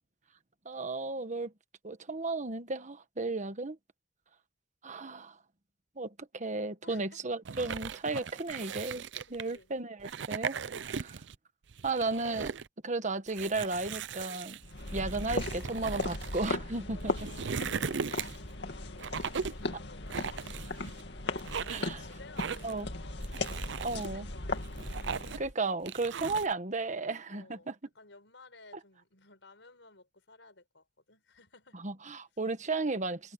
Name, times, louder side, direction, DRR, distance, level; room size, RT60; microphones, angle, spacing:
voice 1, 0.6-1.5 1.8-3.8 4.8-5.3 6.0-9.0 9.3-11.1 11.8-12.5 12.8-14.6 14.9-17.1 21.7-22.0 22.6-22.9 23.8-24.3 25.4-27.7 31.8-33.3, right 3 dB, 40° right, 1.4 m, -34 dB
voice 2, 6.8-7.2 9.3-9.8 16.8-18.4 18.7-20.7 21.4-23.4 23.6-24.8 26.1-26.3 27.3-31.8, left 3 dB, 85° left, 5.7 m, -56 dB
sound 1, 7.4-9.6 10.0-11.4 11.7-12.7 13.3-16.5 17.0-18.5 19.0-19.7 20.1-21.0 21.4-21.9 22.4-22.8 23.2-24.1 24.5-25.5 25.9-26.5, right 6 dB, 75° right, 0.6 m, -38 dB
sound 2, 14.6-25.5, left 2 dB, 70° left, 2.4 m, -37 dB
head